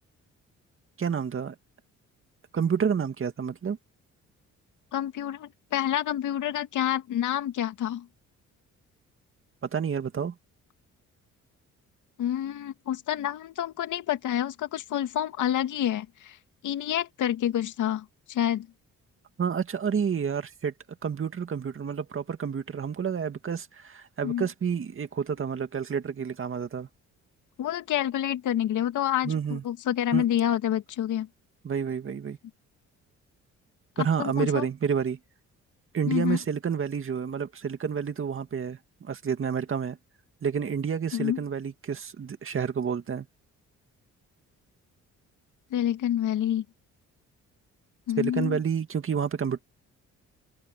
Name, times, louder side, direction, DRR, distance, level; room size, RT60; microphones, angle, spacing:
voice 1, 1.0-1.6 2.5-3.8 9.7-10.3 19.4-20.7 21.0-26.9 29.2-29.6 30.1-30.2 31.6-32.4 34.0-35.2 35.9-40.0 40.4-43.3 48.2-49.6, right 7 dB, 45° right, 2.3 m, -29 dB
voice 2, 4.9-8.1 12.2-16.4 16.6-18.7 24.2-24.5 27.6-31.3 34.0-34.7 36.1-36.4 41.1-41.4 45.7-46.6 48.1-48.6, left 11 dB, 80° left, 2.6 m, -28 dB
open air
cardioid pair, 90°, 30 cm